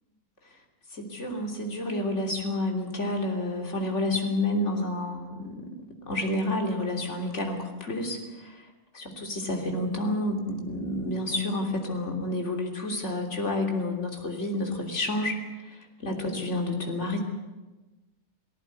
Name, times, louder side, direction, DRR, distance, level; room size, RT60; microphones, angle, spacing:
voice 1, 0.9-5.8 6.1-8.6 8.9-15.4 15.7-17.2, left 1 dB, 50° left, 2 dB, 3.5 m, -30 dB
19.0 x 16.5 x 9.5 m, 1.1 s
omnidirectional pair, 1.6 m